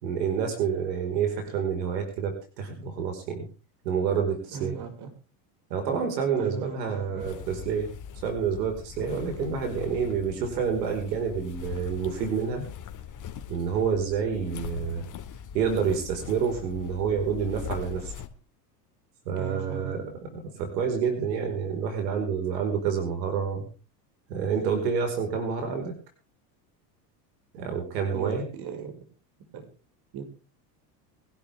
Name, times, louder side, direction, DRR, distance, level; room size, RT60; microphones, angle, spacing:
voice 1, 0.0-3.5 3.8-4.7 5.7-7.9 8.2-12.6 13.5-15.0 15.5-18.1 19.2-23.7 24.3-25.9 27.5-28.4, right 6 dB, 80° right, 5 dB, 5.0 m, -28 dB
voice 2, 4.5-5.1 6.3-7.3 19.4-20.1 28.1-28.9 29.5-29.6 30.1-30.2, right 6 dB, 50° right, 5 dB, 5.8 m, -37 dB
sound 1, 7.2-18.3, left 8 dB, 40° left, 2.5 m, -41 dB
23.5 x 12.0 x 3.6 m, 0.34 s
hypercardioid pair, 95°, 49 cm